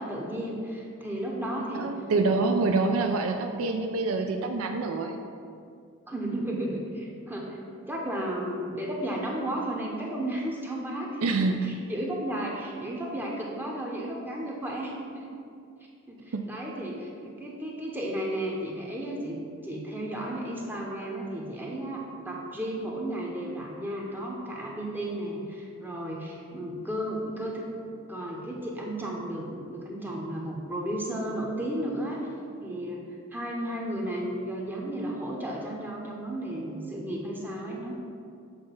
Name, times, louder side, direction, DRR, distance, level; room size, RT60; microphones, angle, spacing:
voice 1, 0.0-1.9 2.3-2.7 6.1-15.3 16.1-27.6 28.1-32.2 32.6-38.0, right 1 dB, 10° right, -2 dB, 0.7 m, -34 dB
voice 2, 1.5-5.2 11.2-11.6 16.3-16.5, right 3 dB, 70° right, 5 dB, 0.4 m, -26 dB
7.2 x 3.3 x 5.7 m, 2.4 s
head